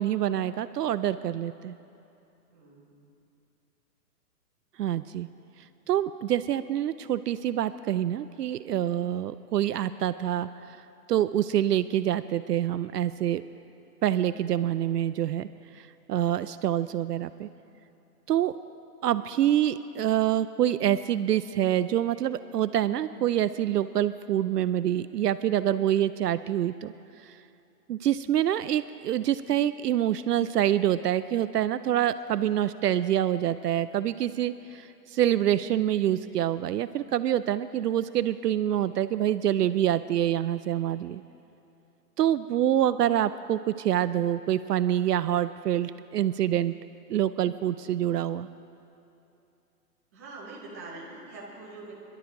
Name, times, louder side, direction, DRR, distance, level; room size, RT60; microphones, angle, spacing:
voice 1, 0.0-1.7 4.8-5.3 5.9-10.8 11.1-13.4 14.0-15.5 15.7-17.5 18.3-18.5 19.0-26.9 27.2-27.4 27.9-41.2 42.2-46.7 47.1-48.5, right 11 dB, 75° right, 13 dB, 0.6 m, -26 dB
voice 2, 2.5-3.1 50.1-51.9, right 2 dB, 10° right, -6 dB, 0.9 m, -44 dB
23.5 x 11.5 x 3.9 m, 2.7 s
hypercardioid pair, 180°, 48 cm